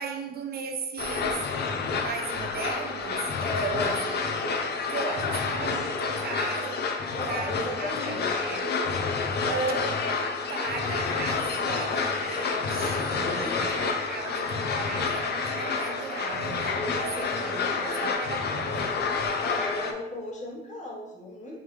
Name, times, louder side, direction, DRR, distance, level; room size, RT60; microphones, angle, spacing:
voice 1, 0.0-1.5 2.0-4.3 4.9-8.7 9.4-10.0 10.5-19.0, right 5 dB, 50° right, 4 dB, 0.5 m, -37 dB
sound 1, 1.0-19.9, left 4 dB, 55° left, 0.5 m, -29 dB
voice 2, 3.4-4.0 5.0-5.1 7.1-8.6 13.1-13.7 16.8-18.1 19.4-21.6, left 1 dB, 35° left, -3 dB, 1.1 m, -36 dB
sound 2, 9.4-18.1, equal, 5° right, 1.2 m, -41 dB
3.4 x 3.3 x 3.1 m, 1.0 s
cardioid pair, 90°, 20 cm